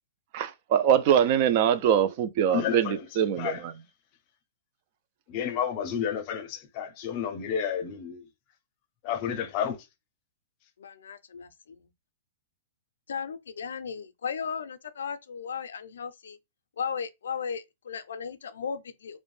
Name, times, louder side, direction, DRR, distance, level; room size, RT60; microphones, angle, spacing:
voice 1, 0.3-3.7, right 9 dB, 40° right, 0.3 m, -23 dB
voice 2, 2.5-3.0 3.4-3.6 5.3-8.2 9.0-9.8, left 8 dB, 35° left, 0.5 m, -31 dB
voice 3, 10.8-11.8 13.1-16.4 16.8-19.2, left 6 dB, 85° left, 0.4 m, -36 dB
2.5 x 2.1 x 3.1 m
hypercardioid pair, 155°, 0 cm